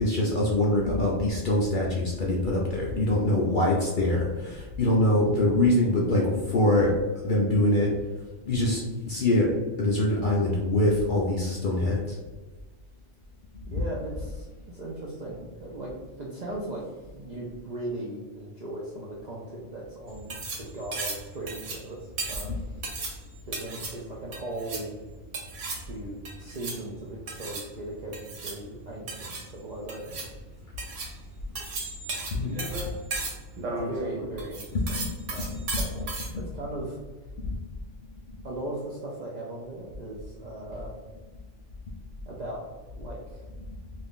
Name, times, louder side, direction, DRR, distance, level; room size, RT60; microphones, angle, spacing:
voice 1, 0.0-7.0 7.2-8.0 8.5-12.2 22.4-22.6 32.3-32.6 34.8-35.1 35.4-35.8 37.4-37.6, left 1 dB, 60° left, -3 dB, 0.5 m, -24 dB
voice 2, 13.7-16.8 17.1-22.6 23.4-24.9 25.8-30.3 33.7-36.1 36.3-37.0 38.4-40.9 42.3-42.6 42.9-43.5, right 1 dB, 60° right, -5 dB, 0.4 m, -38 dB
sound 1, 20.1-36.3, right 3 dB, 75° right, 1.1 m, -36 dB
2.5 x 2.4 x 3.5 m, 1.2 s
omnidirectional pair, 1.3 m